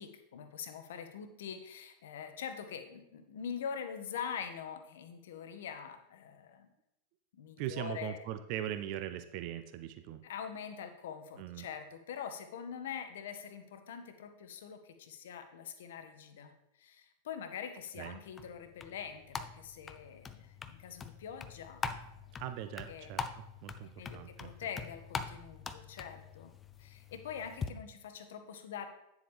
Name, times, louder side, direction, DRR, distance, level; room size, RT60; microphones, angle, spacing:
voice 1, 0.0-6.7 7.3-8.2 10.2-21.8 22.3-22.4 22.9-23.1 24.0-26.5 26.8-28.9, left 7 dB, 60° left, 8 dB, 0.9 m, -44 dB
voice 2, 7.6-10.2 11.4-11.7 18.0-18.2 22.4-24.5, right 11 dB, 45° right, 10 dB, 0.5 m, -40 dB
sound 1, 18.0-27.7, left 5 dB, 20° left, 0.5 m, -44 dB
9.4 x 7.2 x 3.4 m, 0.86 s
figure-of-eight pair, 90°, 0 cm